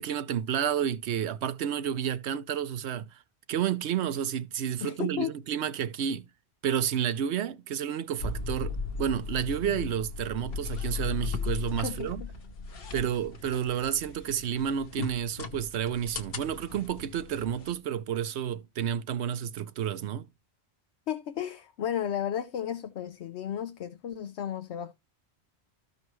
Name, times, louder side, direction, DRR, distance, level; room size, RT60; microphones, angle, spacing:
voice 1, 0.0-3.2 3.5-6.3 6.6-12.2 12.9-20.3, right 9 dB, 85° right, 1.0 m, -30 dB
voice 2, 4.8-5.3 11.8-12.3 21.1-24.9, left 9 dB, 85° left, 1.0 m, -33 dB
sound 1, 8.2-17.8, left 5 dB, 60° left, 1.1 m, -37 dB
13.5 x 5.4 x 3.1 m
omnidirectional pair, 1.1 m